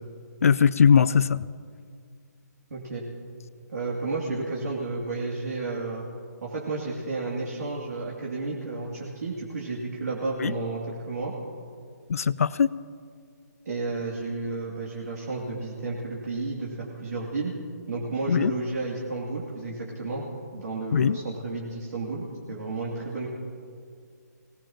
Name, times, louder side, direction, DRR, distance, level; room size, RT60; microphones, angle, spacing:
voice 1, 0.4-1.4 10.4-10.5 12.1-12.7 18.3-18.5 20.9-21.2, left 7 dB, 55° left, 18 dB, 0.4 m, -20 dB
voice 2, 2.7-3.0 3.7-6.0 6.4-11.3 13.7-17.5 17.9-20.2 20.5-23.3, right 3 dB, 60° right, -4 dB, 2.7 m, -32 dB
23.0 x 18.0 x 2.9 m, 2.2 s
hypercardioid pair, 170°, 10 cm